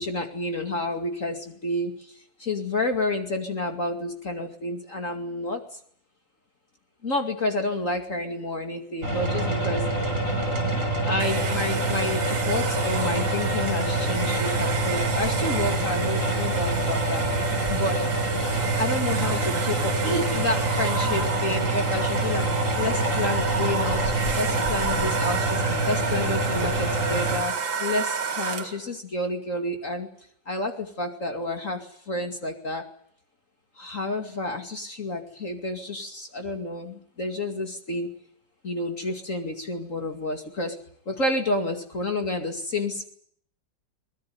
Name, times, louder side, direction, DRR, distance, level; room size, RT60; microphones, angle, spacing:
voice 1, 0.0-5.8 7.0-9.9 11.0-18.0 18.8-27.5 27.8-30.1 30.5-32.9 33.8-38.1 38.6-40.8 41.1-43.1, left 2 dB, 40° left, 5 dB, 2.7 m, -30 dB
sound 1, 9.0-27.4, right 2 dB, 40° right, 6.8 m, -26 dB
Domestic sounds home sounds, 11.2-28.9, right 6 dB, 85° right, 2.8 m, -31 dB
24.0 x 20.5 x 9.4 m, 0.63 s
omnidirectional pair, 2.0 m